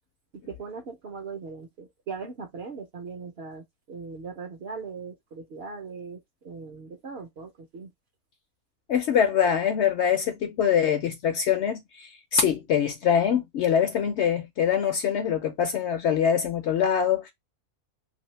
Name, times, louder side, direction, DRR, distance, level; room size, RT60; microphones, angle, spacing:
voice 1, 0.3-6.2 6.4-7.9, right 5 dB, 60° right, 0.7 m, -39 dB
voice 2, 8.9-17.3, left 8 dB, 65° left, 0.7 m, -24 dB
2.7 x 2.6 x 3.0 m
omnidirectional pair, 1.6 m